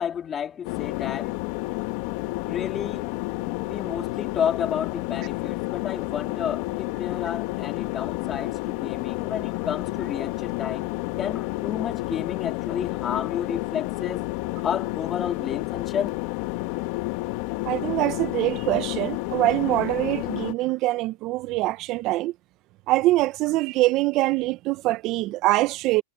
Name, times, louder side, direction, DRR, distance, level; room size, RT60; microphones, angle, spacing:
voice 1, 0.0-1.4 2.5-3.1 3.7-10.9 11.2-14.3 14.6-16.1, left 8 dB, 25° left, 3.3 m, -31 dB
sound 1, 0.6-20.5, left 23 dB, 55° left, 2.1 m, -30 dB
voice 2, 17.6-22.3 22.9-26.0, right 18 dB, 45° right, 0.9 m, -24 dB
hypercardioid pair, 120°, 0 cm